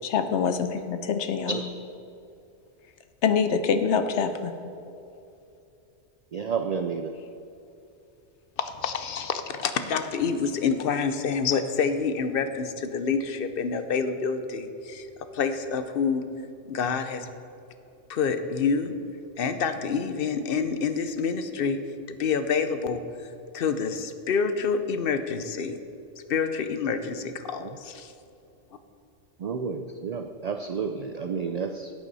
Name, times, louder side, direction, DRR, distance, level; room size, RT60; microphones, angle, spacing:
voice 1, 0.1-1.5 3.2-4.5, left 6 dB, 75° left, 9 dB, 1.0 m, -25 dB
voice 2, 6.3-7.1 27.6-27.8 29.4-31.9, right 5 dB, 65° right, 6 dB, 0.4 m, -31 dB
voice 3, 8.6-15.1 15.3-16.2 16.7-17.3 18.1-18.9 19.4-21.8 22.1-23.0 23.5-25.8 26.3-28.1, left 5 dB, 55° left, 9 dB, 0.8 m, -27 dB
14.0 x 8.3 x 4.1 m, 2.7 s
omnidirectional pair, 1.2 m